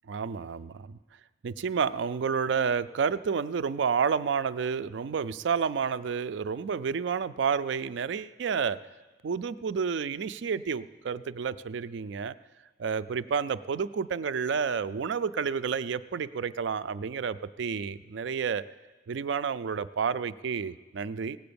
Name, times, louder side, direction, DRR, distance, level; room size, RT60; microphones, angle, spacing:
voice 1, 0.1-1.0 1.4-8.8 9.2-12.4 12.8-18.6 19.1-21.4, right 6 dB, 65° right, 15 dB, 0.4 m, -30 dB
17.5 x 7.8 x 6.9 m, 1.3 s
head